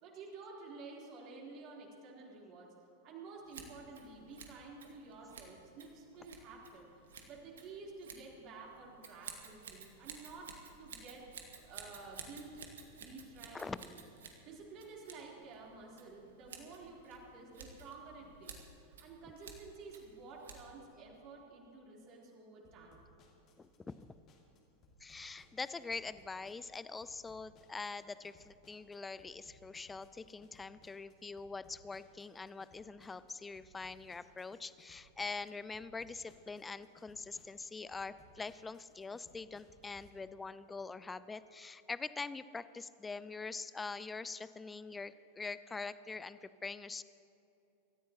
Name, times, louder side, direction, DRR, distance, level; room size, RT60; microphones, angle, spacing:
voice 1, 0.0-2.7 3.0-11.3 11.6-12.6 12.9-14.0 14.4-23.0, right 3 dB, 40° right, -3 dB, 3.6 m, -51 dB
Scissors, 3.4-20.9, right 6 dB, 65° right, 1.6 m, -54 dB
voice 2, 13.5-13.9 23.6-24.0 25.0-47.0, left 4 dB, 15° left, 16 dB, 0.4 m, -44 dB
sound 1, 22.6-40.1, left 1 dB, 35° left, 2.3 m, -65 dB
25.5 x 14.0 x 3.0 m, 2.9 s
figure-of-eight pair, 90°, 0 cm